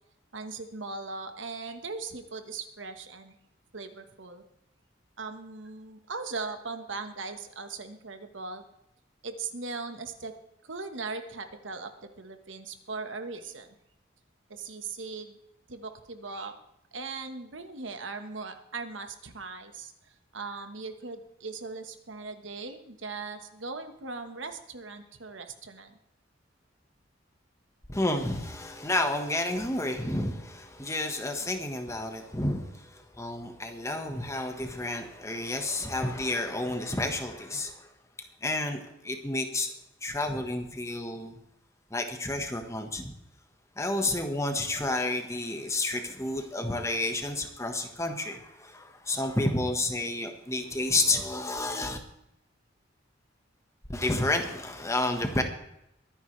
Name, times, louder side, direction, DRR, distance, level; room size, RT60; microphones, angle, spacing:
voice 1, 0.3-3.3 3.7-4.4 5.2-8.6 9.2-10.3 10.6-13.7 14.5-15.4 15.7-16.5 16.9-19.9 20.3-26.0, right 4 dB, 80° right, 7 dB, 1.4 m, -39 dB
voice 2, 27.9-37.9 38.4-39.7 40.0-41.4 41.9-43.1 43.8-52.0 53.9-55.4, left 2 dB, 15° left, 5 dB, 1.4 m, -30 dB
23.0 x 10.0 x 3.3 m, 0.82 s
head